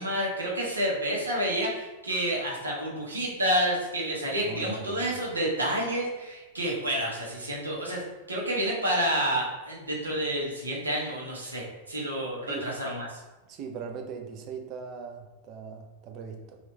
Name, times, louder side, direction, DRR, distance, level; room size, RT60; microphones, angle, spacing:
voice 1, 0.0-13.1, right 1 dB, 80° right, -4 dB, 0.8 m, -29 dB
voice 2, 4.4-5.2 12.5-12.7 13.5-16.6, right 6 dB, 40° right, 4 dB, 0.4 m, -40 dB
2.9 x 2.4 x 3.2 m, 1.1 s
figure-of-eight pair, 90°, 0 cm